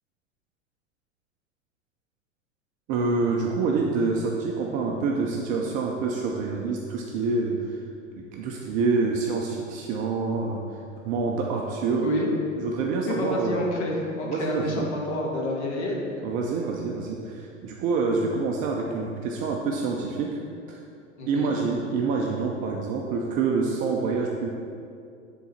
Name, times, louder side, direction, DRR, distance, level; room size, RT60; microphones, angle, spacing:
voice 1, 2.9-7.8 8.2-10.6 11.0-12.1 12.6-13.7 14.3-14.9 16.2-20.4 20.7-20.8 21.3-24.5, right 4 dB, 20° right, 0 dB, 0.3 m, -27 dB
voice 2, 13.1-16.3 21.2-21.5, left 1 dB, 55° left, -2 dB, 1.7 m, -29 dB
10.5 x 3.8 x 4.3 m, 2.4 s
figure-of-eight pair, 90°, 40 cm